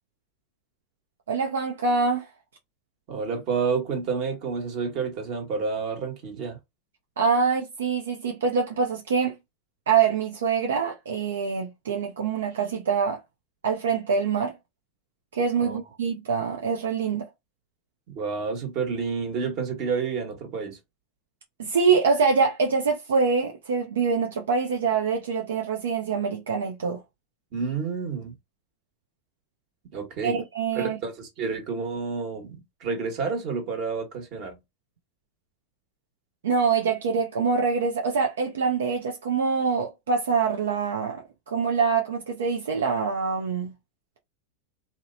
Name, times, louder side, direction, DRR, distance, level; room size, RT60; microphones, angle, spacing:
voice 1, 1.3-2.3 7.2-9.4 9.9-13.2 13.6-14.5 15.3-17.3 21.6-27.0 30.2-31.0 36.4-43.7, right 5 dB, 85° right, 0.4 m, -25 dB
voice 2, 3.1-6.6 15.6-15.8 18.1-20.8 27.5-28.3 29.9-30.4 30.7-34.6, right 5 dB, 55° right, 1.2 m, -29 dB
2.8 x 2.1 x 2.6 m
hypercardioid pair, 105°, 0 cm